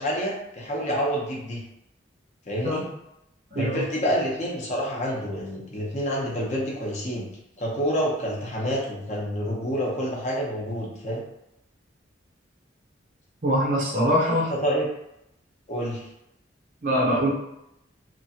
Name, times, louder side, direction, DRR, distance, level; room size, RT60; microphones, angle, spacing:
voice 1, 0.0-1.6 2.5-2.8 3.5-7.3 7.6-11.2 14.3-14.9 15.7-16.1, equal, 40° left, -3 dB, 0.8 m, -28 dB
voice 2, 3.5-3.8 13.4-14.5 16.8-17.3, equal, 45° right, -4 dB, 0.6 m, -23 dB
2.9 x 2.4 x 2.7 m, 0.84 s
head